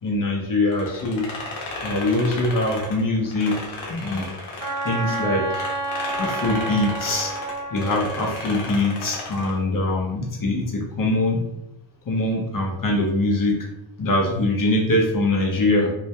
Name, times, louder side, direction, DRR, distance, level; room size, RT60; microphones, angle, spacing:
voice 1, 0.0-1.3 1.8-4.4 4.8-5.6 6.2-7.4 7.7-11.4 12.1-13.7 14.0-15.9, left 2 dB, 45° left, 0 dB, 0.7 m, -23 dB
sound 1, 0.7-5.2 5.5-9.6, left 2 dB, 75° left, 0.8 m, -34 dB
Wind instrument woodwind instrument, 4.6-8.5, right 2 dB, 40° right, 0.8 m, -29 dB
2.5 x 2.2 x 2.2 m, 0.87 s
supercardioid pair, 50°, 48 cm